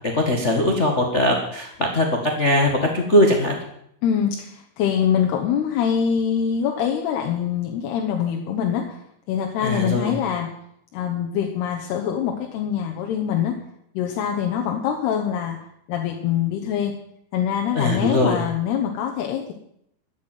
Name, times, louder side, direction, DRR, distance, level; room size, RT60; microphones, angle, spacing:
voice 1, 0.1-3.5 9.6-10.1 17.7-18.4, left 1 dB, 45° left, 1 dB, 0.8 m, -20 dB
voice 2, 4.0-9.0 9.3-10.5 10.9-13.6 13.9-17.0 17.3-19.5, left 8 dB, 90° left, 2 dB, 3.2 m, -24 dB
13.0 x 8.3 x 9.1 m, 0.74 s
omnidirectional pair, 4.5 m